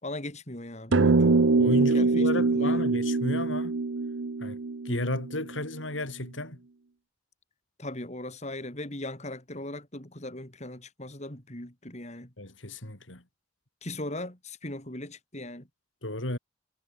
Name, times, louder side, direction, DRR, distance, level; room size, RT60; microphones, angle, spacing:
voice 1, 0.0-1.4 1.8-2.8 7.8-12.3 13.8-15.7, left 1 dB, 35° left, 4.5 m, -39 dB
sound 1, 0.9-5.6, right 3 dB, 85° right, 0.8 m, -24 dB
voice 2, 1.6-3.8 4.4-4.6 4.8-6.6 12.4-13.2 16.0-16.4, left 1 dB, 85° left, 5.6 m, -33 dB
head